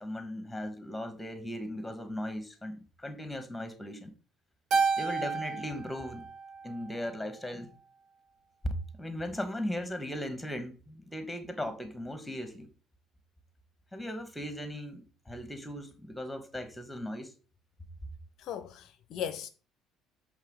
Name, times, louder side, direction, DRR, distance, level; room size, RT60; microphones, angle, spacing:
voice 1, 0.0-4.1 5.0-6.3 6.6-7.7 8.6-12.7 13.9-17.3, left 1 dB, 5° left, 1.3 m, -38 dB
Keyboard (musical), 4.7-7.2, right 4 dB, 50° right, 0.6 m, -31 dB
voice 2, 18.4-19.5, left 9 dB, 55° left, 0.5 m, -37 dB
7.3 x 3.6 x 5.3 m
figure-of-eight pair, 55°, 0 cm